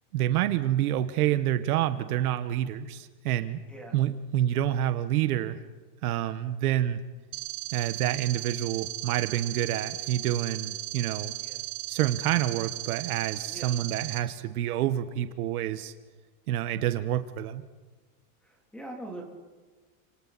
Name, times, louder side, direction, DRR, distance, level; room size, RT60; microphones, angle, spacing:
voice 1, 0.1-3.6 3.9-5.6 6.0-7.0 7.7-11.3 11.9-15.9 16.5-17.6, right 12 dB, 65° right, 10 dB, 1.4 m, -28 dB
sound 1, 7.3-14.2, right 18 dB, 85° right, 2.4 m, -36 dB
voice 2, 13.5-13.8 18.4-19.2, right 1 dB, ahead, 0 dB, 3.2 m, -42 dB
29.5 x 26.5 x 4.2 m, 1.3 s
supercardioid pair, 180°, 47 cm